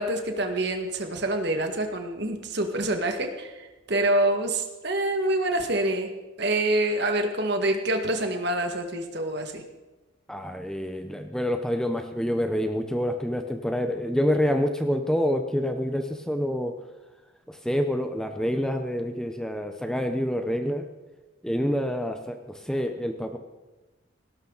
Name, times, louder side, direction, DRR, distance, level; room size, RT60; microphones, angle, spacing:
voice 1, 0.0-6.1 6.4-9.6, right 1 dB, 55° right, 5 dB, 1.9 m, -26 dB
voice 2, 10.3-16.7 17.5-20.9 21.4-22.4 22.6-23.4, equal, 5° left, 5 dB, 0.8 m, -27 dB
18.0 x 17.5 x 4.0 m, 1.1 s
head